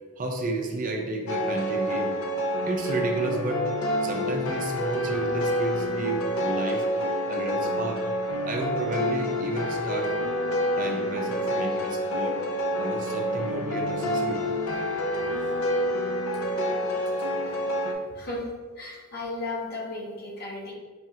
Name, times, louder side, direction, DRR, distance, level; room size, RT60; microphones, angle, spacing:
voice 1, 0.2-2.1 2.7-3.6 4.0-6.9 7.3-8.0 8.5-10.1 10.8-12.4 12.8-14.4, right 2 dB, 40° right, 2 dB, 0.5 m, -31 dB
sound 1, 1.3-17.9, equal, 85° left, 0.5 m, -28 dB
voice 2, 17.8-18.5 18.8-20.7, left 2 dB, 50° left, -3 dB, 0.9 m, -35 dB
5.5 x 2.4 x 2.7 m, 1.5 s
head